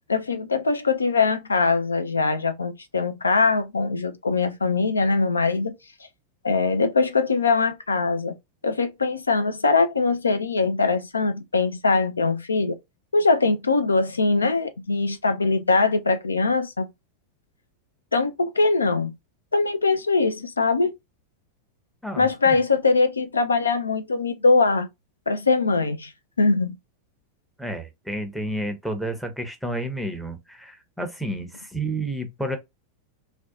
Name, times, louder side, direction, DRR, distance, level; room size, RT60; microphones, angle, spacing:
voice 1, 0.1-5.7 6.4-8.3 8.6-12.8 13.1-16.9 18.1-19.1 19.5-20.9 22.2-24.9 25.3-26.1 26.4-26.7, left 4 dB, 75° left, 0.3 m, -22 dB
voice 2, 22.0-22.6 27.6-32.6, right 1 dB, ahead, 0.6 m, -31 dB
2.5 x 2.2 x 2.3 m
figure-of-eight pair, 90°, 0 cm